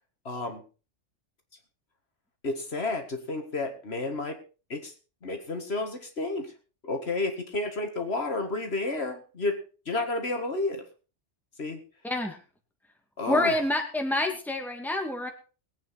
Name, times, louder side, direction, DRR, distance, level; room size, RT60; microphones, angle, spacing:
voice 1, 0.3-0.6 2.4-4.4 4.7-4.9 5.2-6.5 6.8-10.9 11.6-11.8 13.2-13.6, left 2 dB, 60° left, 5 dB, 2.0 m, -31 dB
voice 2, 12.0-12.4 13.3-15.3, left 1 dB, ahead, 4 dB, 2.1 m, -27 dB
20.5 x 8.7 x 4.2 m, 0.35 s
omnidirectional pair, 1.2 m